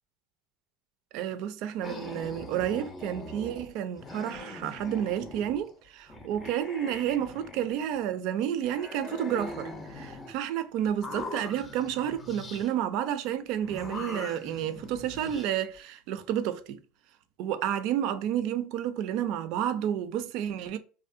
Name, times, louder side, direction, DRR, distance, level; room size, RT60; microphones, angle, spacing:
voice 1, 1.1-16.8 17.4-20.8, right 10 dB, 60° right, 0.3 m, -31 dB
sound 1, 1.8-5.7 6.1-8.1 8.6-10.3 10.9-12.7 13.6-15.5, left 2 dB, 25° left, 0.5 m, -42 dB
2.6 x 2.1 x 2.5 m
hypercardioid pair, 95°, 0 cm